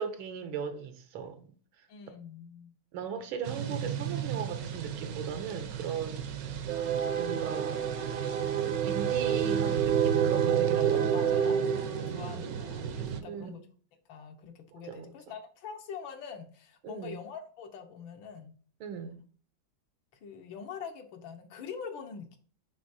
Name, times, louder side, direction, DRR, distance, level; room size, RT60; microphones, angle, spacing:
voice 1, 0.0-1.5 1.8-1.9 2.9-6.5 7.2-11.2 13.1-13.6 14.7-15.1 16.8-17.2 18.8-19.2, right 7 dB, 85° right, 1.8 m, -38 dB
voice 2, 1.9-2.8 10.8-13.7 14.1-18.6 20.1-22.4, left 6 dB, 75° left, 1.8 m, -44 dB
sound 1, 3.4-13.2, right 8 dB, 65° right, 1.0 m, -29 dB
9.9 x 3.9 x 2.7 m
omnidirectional pair, 2.2 m